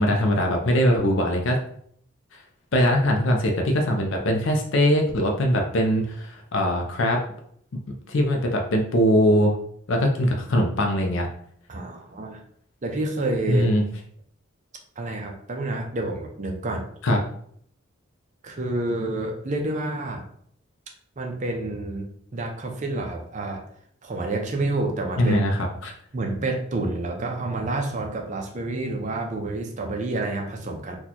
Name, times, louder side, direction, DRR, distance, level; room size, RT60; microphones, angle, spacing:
voice 1, 0.0-1.6 2.3-2.4 2.7-7.2 8.1-9.5 9.9-11.3 13.5-13.8 17.0-17.2 25.2-25.9, equal, 65° left, 2 dB, 0.5 m, -21 dB
voice 2, 11.7-12.4 12.8-13.7 15.0-16.9 18.4-20.2 21.2-22.1 22.3-23.6 24.0-25.4 26.1-31.0, right 2 dB, 35° right, 2 dB, 0.5 m, -28 dB
2.9 x 2.3 x 4.0 m, 0.65 s
head